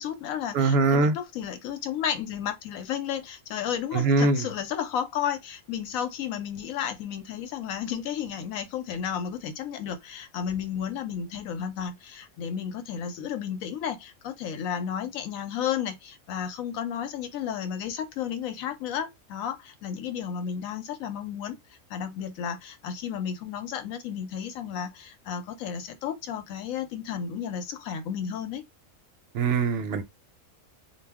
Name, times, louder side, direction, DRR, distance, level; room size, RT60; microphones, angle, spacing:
voice 1, 0.0-21.6 21.9-28.6, left 8 dB, 85° left, 1.0 m, -33 dB
voice 2, 0.5-1.2 3.9-4.4 29.3-30.0, right 3 dB, 65° right, 0.7 m, -22 dB
2.3 x 2.1 x 3.4 m
omnidirectional pair, 1.4 m